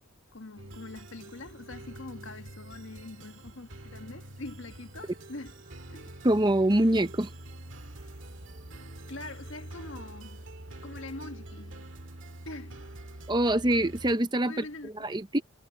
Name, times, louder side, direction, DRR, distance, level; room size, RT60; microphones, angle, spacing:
voice 1, 0.3-5.5 5.9-6.1 9.1-10.4 10.8-11.9 12.4-12.8 14.4-14.9, left 2 dB, 70° left, 1.6 m, -43 dB
sound 1, 0.6-14.2, right 1 dB, 65° right, 2.0 m, -46 dB
sound 2, 4.3-10.1, right 1 dB, 40° right, 5.7 m, -56 dB
voice 2, 6.2-7.3 13.3-15.4, right 1 dB, 20° right, 0.8 m, -25 dB
head